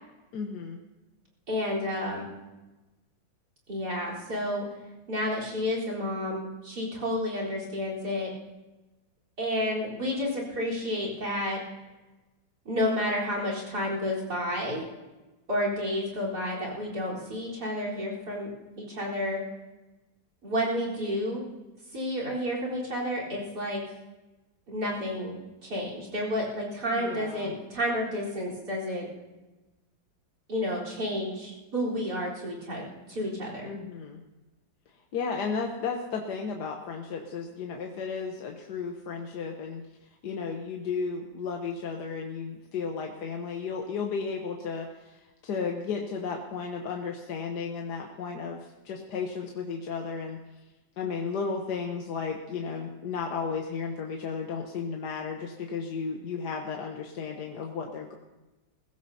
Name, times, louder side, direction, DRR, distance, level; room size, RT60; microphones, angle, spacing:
voice 1, 0.3-0.8 26.9-27.5 33.6-34.2 35.1-39.8 40.2-50.4 51.0-58.1, left 5 dB, 65° left, 2 dB, 1.5 m, -34 dB
voice 2, 1.5-2.4 3.7-4.6 5.1-8.3 9.4-11.6 12.6-15.0 15.5-18.5 18.8-19.4 20.4-21.4 21.9-23.8 24.7-29.1 30.5-33.7, left 1 dB, 55° right, -3 dB, 4.6 m, -30 dB
21.5 x 16.0 x 2.8 m, 1.1 s
omnidirectional pair, 2.0 m